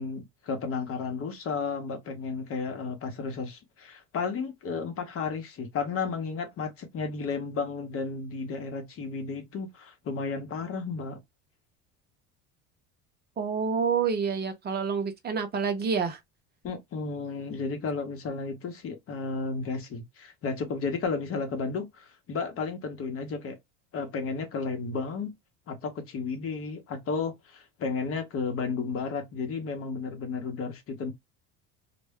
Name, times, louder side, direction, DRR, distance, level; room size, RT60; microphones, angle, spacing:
voice 1, 0.0-11.2 16.6-23.6 23.9-25.3 25.7-31.1, left 4 dB, 40° left, 0.8 m, -33 dB
voice 2, 13.4-16.2, right 6 dB, 30° right, 0.6 m, -28 dB
2.2 x 2.1 x 3.3 m
cardioid pair, 125°, 33 cm